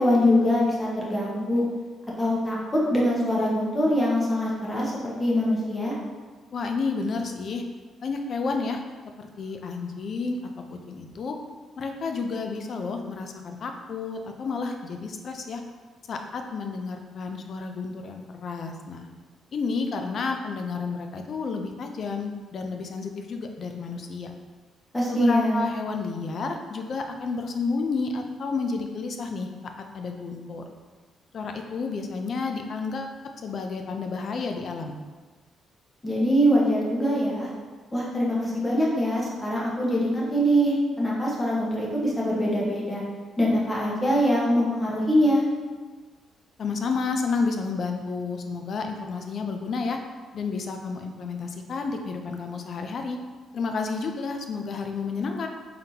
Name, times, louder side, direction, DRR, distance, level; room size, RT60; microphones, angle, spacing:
voice 1, 0.0-1.6 2.2-5.9 24.9-25.7 36.0-37.5 37.9-43.0 43.4-45.4, equal, 15° left, -5 dB, 1.0 m, -23 dB
voice 2, 6.5-7.6 8.0-8.8 9.2-10.4 10.7-11.4 11.8-15.6 16.1-19.1 19.5-24.3 25.1-29.5 29.9-30.6 31.3-35.0 46.6-50.0 50.3-53.2 53.5-55.5, left 4 dB, 55° left, 4 dB, 0.4 m, -31 dB
3.9 x 3.6 x 2.8 m, 1.4 s
cardioid pair, 90°, 0 cm